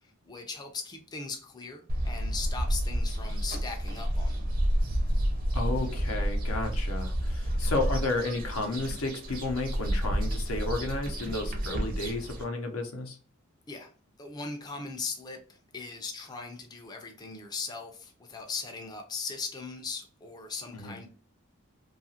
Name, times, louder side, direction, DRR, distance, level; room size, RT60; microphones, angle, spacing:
voice 1, 0.2-4.5 13.7-13.9 14.2-21.1, left 4 dB, 20° left, 3 dB, 0.4 m, -39 dB
sound 1, 1.9-12.4, equal, 40° right, 0.5 m, -30 dB
voice 2, 5.5-13.2 20.7-21.0, left 2 dB, 85° left, 4 dB, 0.7 m, -32 dB
2.8 x 2.4 x 2.7 m, 0.40 s
head